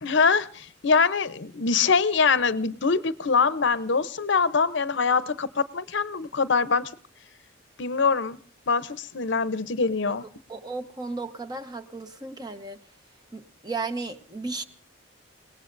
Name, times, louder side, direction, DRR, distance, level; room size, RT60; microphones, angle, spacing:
voice 1, 0.0-6.9 7.8-8.4 8.7-10.2, left 5 dB, 65° left, 14 dB, 0.7 m, -23 dB
voice 2, 10.5-12.8 13.3-14.6, right 3 dB, 20° right, 7 dB, 1.1 m, -34 dB
29.0 x 18.5 x 2.6 m, 0.43 s
head